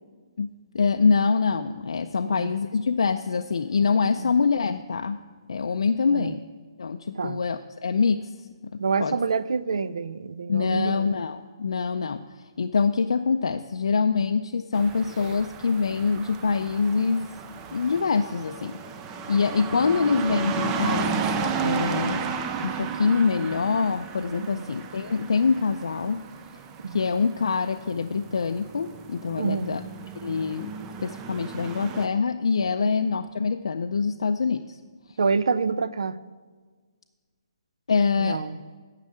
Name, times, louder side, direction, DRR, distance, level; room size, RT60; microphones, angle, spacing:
voice 1, 0.4-5.2 5.5-6.4 6.8-8.3 8.7-9.2 10.5-12.2 12.6-17.3 17.7-18.8 19.3-21.3 21.6-22.3 22.6-26.2 26.9-29.8 30.2-30.7 31.0-34.8 37.9-38.4, left 5 dB, 75° left, 0.5 m, -25 dB
voice 2, 2.2-2.5 4.2-4.3 6.1-6.3 7.1-7.4 8.8-11.1 24.5-24.7 26.8-27.1 29.3-29.8 35.2-36.2 38.2-38.6, right 5 dB, 85° right, 0.5 m, -27 dB
sound 1, 14.7-32.1, right 6 dB, 10° right, 0.4 m, -33 dB
9.7 x 6.6 x 8.6 m
hypercardioid pair, 180°, 3 cm